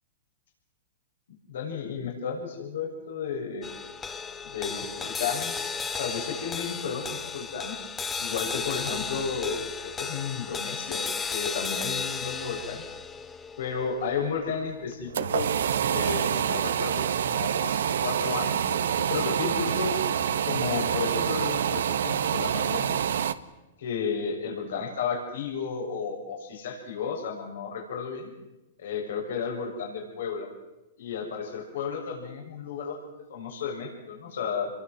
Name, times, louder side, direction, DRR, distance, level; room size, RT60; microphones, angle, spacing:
voice 1, 1.5-3.7 4.4-7.9 8.2-12.8 13.6-15.5 15.9-20.0 20.4-23.0 23.8-28.3 28.8-30.5 31.0-33.0 33.3-34.7, left 6 dB, 75° left, 1 dB, 7.2 m, -33 dB
sound 1, 3.6-16.1, left 5 dB, 20° left, 1.8 m, -35 dB
sound 2, 14.8-23.3, right 8 dB, 80° right, 1.4 m, -27 dB
28.5 x 22.5 x 7.7 m, 1.0 s
hypercardioid pair, 125°, 0 cm